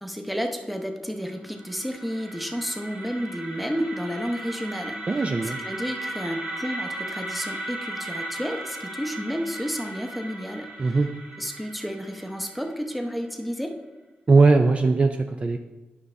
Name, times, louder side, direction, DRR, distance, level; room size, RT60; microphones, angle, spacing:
voice 1, 0.0-5.0 5.4-11.0 11.4-13.7, equal, ahead, 4 dB, 0.8 m, -31 dB
sound 1, 1.3-13.3, right 1 dB, 55° right, 1.9 m, -37 dB
voice 2, 5.1-5.6 10.8-11.1 14.3-15.6, right 3 dB, 35° right, 5 dB, 0.4 m, -19 dB
9.4 x 5.5 x 3.3 m, 1.1 s
cardioid pair, 90°, 4 cm